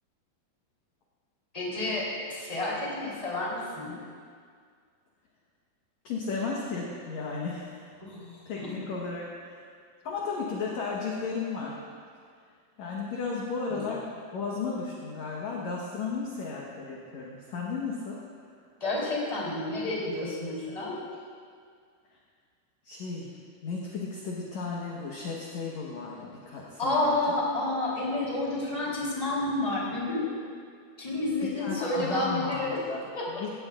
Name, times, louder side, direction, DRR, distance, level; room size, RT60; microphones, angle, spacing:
voice 1, 1.5-4.0 8.0-8.7 13.7-13.8 18.8-21.0 26.8-30.3 31.0-32.8 33.1-33.4, left 2 dB, 10° left, -6 dB, 2.8 m, -30 dB
voice 2, 6.0-7.8 8.5-9.7 10.0-11.8 12.8-14.0 14.3-18.2 22.8-23.3 23.6-27.2 31.6-33.5, left 4 dB, 60° left, -4 dB, 2.1 m, -34 dB
17.5 x 16.5 x 2.5 m, 2.1 s
omnidirectional pair, 4.5 m